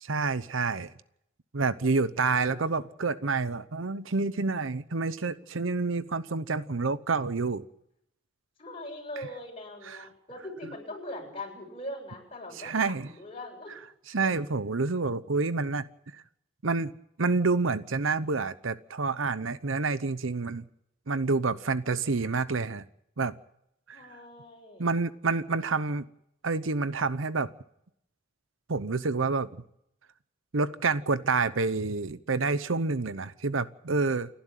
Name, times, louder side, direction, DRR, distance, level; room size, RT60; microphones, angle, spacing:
voice 1, 0.0-0.9 1.5-7.7 12.6-13.1 14.1-15.9 16.6-16.9 17.2-20.6 21.1-22.8 23.2-23.3 23.9-24.0 24.8-26.0 26.4-27.5 28.7-29.5 30.5-34.3, right 4 dB, 75° right, 14 dB, 0.9 m, -28 dB
voice 2, 2.2-2.8 8.6-13.7 14.2-14.3 23.9-25.0, left 1 dB, 30° left, 0 dB, 7.5 m, -41 dB
29.0 x 11.5 x 9.1 m, 0.78 s
head